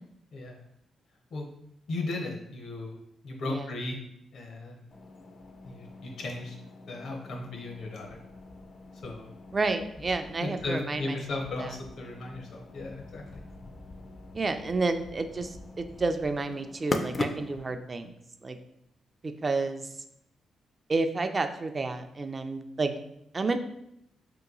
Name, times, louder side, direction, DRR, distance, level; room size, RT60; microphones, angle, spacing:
voice 1, 1.9-3.0 3.2-4.0 4.3-4.9 5.6-6.6 6.9-8.2 9.0-9.3 10.4-13.2, left 2 dB, 70° left, 1 dB, 0.7 m, -36 dB
sound 1, 4.9-17.8, left 2 dB, 40° left, 0.4 m, -41 dB
voice 2, 9.5-11.2 11.6-11.7 14.3-18.1 18.4-18.6 19.2-19.9 20.9-22.9 23.3-23.6, right 3 dB, 40° right, 8 dB, 0.3 m, -30 dB
2.9 x 2.3 x 3.8 m, 0.77 s
supercardioid pair, 50°, 0 cm